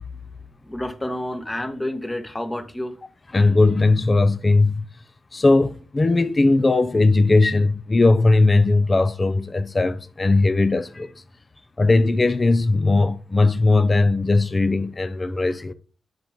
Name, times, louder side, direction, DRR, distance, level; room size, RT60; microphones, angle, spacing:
voice 1, 0.6-3.0, left 1 dB, 15° left, 1.3 m, -29 dB
voice 2, 3.3-4.8 5.3-11.1 11.8-15.7, left 2 dB, 35° left, 0.6 m, -18 dB
7.8 x 5.9 x 3.6 m
cardioid pair, 60°, 0 cm